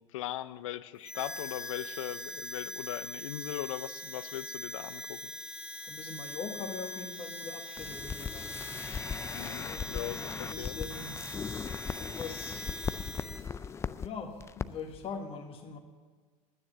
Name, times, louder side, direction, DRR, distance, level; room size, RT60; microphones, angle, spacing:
voice 1, 0.0-5.3 9.3-10.8, left 14 dB, 65° left, 16 dB, 0.6 m, -39 dB
Harmonica, 1.0-13.5, equal, 5° right, 1.6 m, -42 dB
voice 2, 5.8-8.6 9.3-11.1 12.0-12.9 13.9-15.8, left 5 dB, 35° left, 3 dB, 1.6 m, -42 dB
sound 1, 7.8-14.1 14.4-14.7 14.9-15.1, left 6 dB, 15° left, 0.3 m, -38 dB
9.8 x 9.6 x 8.9 m, 1.5 s
figure-of-eight pair, 80°, 18 cm